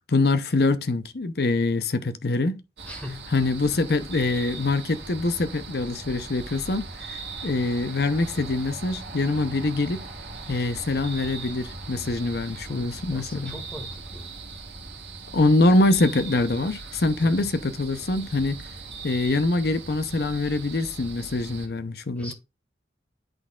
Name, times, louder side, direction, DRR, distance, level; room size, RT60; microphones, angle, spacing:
voice 1, 0.1-2.6 3.3-10.0 10.5-13.5 15.3-18.7 19.0-22.3, left 2 dB, 60° left, 0.7 m, -24 dB
voice 2, 2.8-3.3 12.7-13.9 14.1-14.3 17.2-17.3 21.6-21.7 22.1-22.3, left 1 dB, 10° left, 1.7 m, -39 dB
sound 1, 2.8-21.7, right 3 dB, 75° right, 1.6 m, -39 dB
11.0 x 3.9 x 2.4 m
head